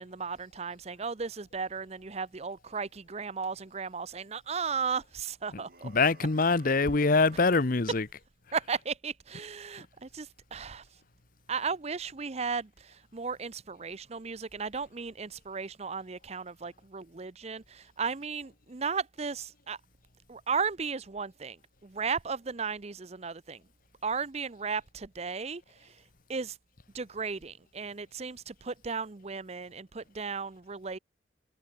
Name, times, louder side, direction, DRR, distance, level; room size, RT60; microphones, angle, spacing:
voice 1, 0.0-5.9 8.5-10.8 11.5-19.8 20.3-23.6 24.0-26.0 26.3-26.6 26.9-31.0, right 5 dB, 35° right, 0.7 m, -35 dB
voice 2, 5.5-8.1, left 3 dB, 50° left, 0.8 m, -25 dB
sound 1, 5.6-7.8, right 3 dB, 50° right, 2.2 m, -56 dB
head